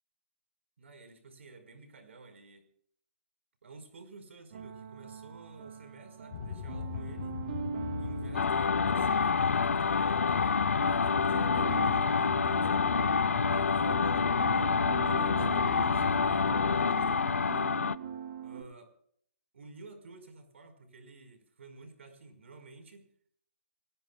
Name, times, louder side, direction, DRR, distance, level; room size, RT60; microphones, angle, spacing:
voice 1, 0.8-2.7 3.6-7.4 8.0-12.9 13.5-17.7 18.4-18.9 19.5-23.1, right 3 dB, 65° right, 7 dB, 4.8 m, -52 dB
sound 1, 4.5-18.6, right 6 dB, 45° right, 2.8 m, -41 dB
sound 2, 6.3-16.9, left 6 dB, 40° left, 4.1 m, -38 dB
sound 3, 8.3-18.0, left 5 dB, 75° left, 0.6 m, -27 dB
27.0 x 19.0 x 2.3 m, 0.64 s
hypercardioid pair, 150°, 7 cm